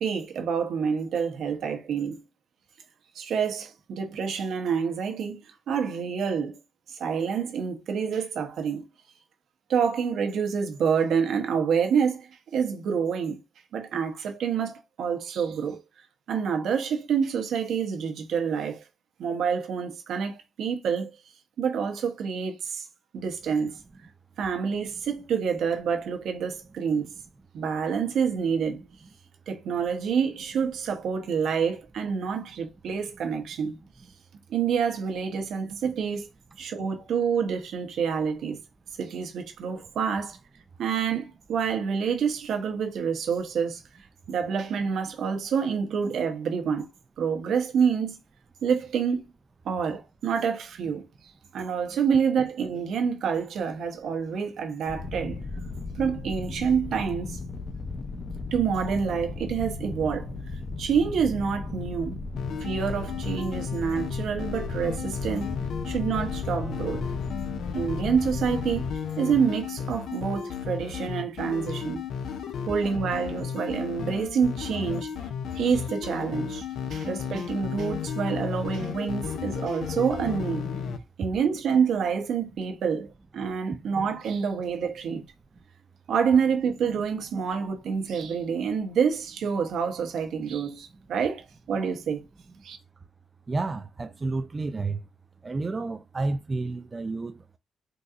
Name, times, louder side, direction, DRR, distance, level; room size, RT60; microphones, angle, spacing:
voice 1, 0.0-2.2 3.1-6.6 6.9-8.9 9.7-13.4 13.7-15.8 16.3-18.8 19.2-21.1 21.6-22.9 23.1-23.8 24.4-27.1 27.5-28.8 29.5-33.8 34.5-36.3 36.6-38.6 39.0-40.4 40.8-43.8 44.3-46.9 47.2-48.2 48.6-49.2 49.6-51.0 51.5-55.4 56.0-57.4 58.5-60.3 60.8-62.2 62.6-65.5 65.9-67.0 67.7-68.9 69.2-72.0 72.7-75.1 75.5-80.7 81.2-85.2 86.1-92.2 92.6-92.8, right 6 dB, 70° right, 0.9 m, -27 dB
sound 1, 54.9-69.0, left 3 dB, 30° left, 0.6 m, -36 dB
sound 2, 62.4-81.0, left 7 dB, 70° left, 0.4 m, -34 dB
voice 2, 93.5-95.0 95.4-97.6, right 3 dB, 30° right, 0.3 m, -30 dB
3.8 x 2.7 x 2.4 m
cardioid pair, 90°, 0 cm